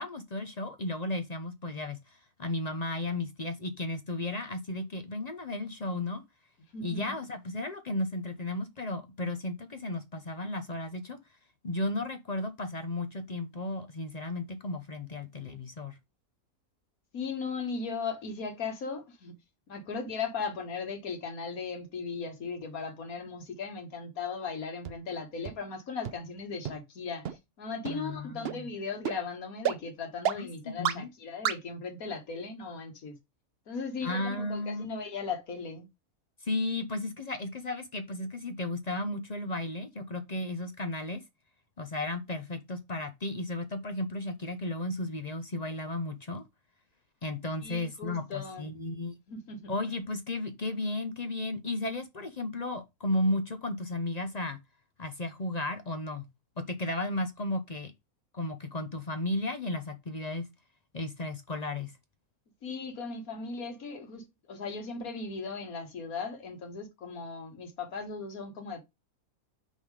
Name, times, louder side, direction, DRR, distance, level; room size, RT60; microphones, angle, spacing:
voice 1, 0.0-6.2 6.8-11.2 11.6-15.9 27.8-28.7 30.3-31.1 34.0-34.9 36.4-41.2 41.8-46.4 47.2-49.1 49.7-54.6 55.0-56.3 56.6-57.9 58.3-60.5 60.9-61.9, left 2 dB, 40° left, 0.7 m, -34 dB
voice 2, 6.7-7.1 17.1-19.4 19.7-33.2 33.7-35.9 47.6-48.7 49.3-49.7 62.6-68.8, left 5 dB, 75° left, 1.8 m, -37 dB
sound 1, 24.8-24.9 25.4-25.5 26.0-26.1 26.6-26.7 27.2-27.3 27.8-27.9 28.4-28.5 29.0-29.1 29.6-29.7 30.2-30.3 30.8-30.9 31.4-31.5, right 9 dB, 60° right, 0.7 m, -29 dB
5.4 x 3.7 x 4.8 m
omnidirectional pair, 1.5 m